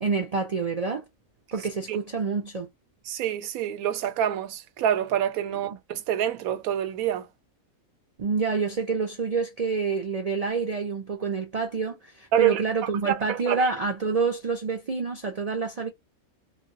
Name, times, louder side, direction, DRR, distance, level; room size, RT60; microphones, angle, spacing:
voice 1, 0.0-1.1 1.5-2.7 5.7-5.8 8.2-15.9, right 4 dB, 45° right, 0.5 m, -27 dB
voice 2, 3.1-7.3 12.3-12.6 13.1-13.7, right 10 dB, 90° right, 1.1 m, -26 dB
3.2 x 2.2 x 2.6 m
omnidirectional pair, 1.4 m